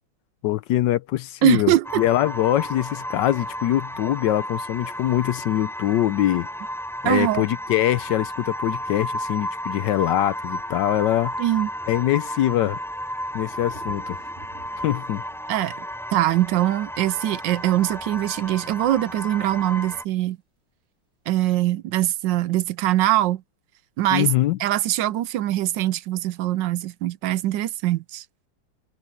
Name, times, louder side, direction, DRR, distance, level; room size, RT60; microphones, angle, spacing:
voice 1, 0.4-6.5 7.0-11.3 11.9-12.8 13.3-14.2 14.8-15.2 24.1-24.6, left 13 dB, 75° left, 1.2 m, -23 dB
voice 2, 1.4-2.0 7.0-7.5 11.4-11.7 15.5-15.8 16.1-20.4 21.3-23.4 24.0-24.3 24.6-28.2, right 14 dB, 75° right, 1.2 m, -22 dB
sound 1, 1.8-20.0, equal, ahead, 5.6 m, -33 dB
Thunder, 10.4-10.5 10.7-18.1 19.7-19.8, right 1 dB, 30° right, 3.5 m, -51 dB
omnidirectional pair, 2.1 m